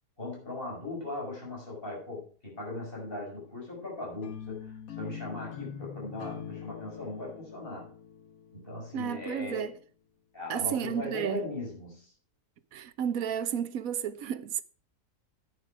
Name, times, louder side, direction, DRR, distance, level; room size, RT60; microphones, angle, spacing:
voice 1, 0.2-7.9 8.5-9.7 10.3-12.1, left 2 dB, 35° left, 6.0 m, -39 dB
sound 1, 4.2-9.3, left 8 dB, 65° left, 1.5 m, -44 dB
voice 2, 8.9-9.7 10.5-11.4 12.7-14.6, right 9 dB, 65° right, 1.2 m, -32 dB
10.5 x 9.1 x 4.8 m
omnidirectional pair, 1.6 m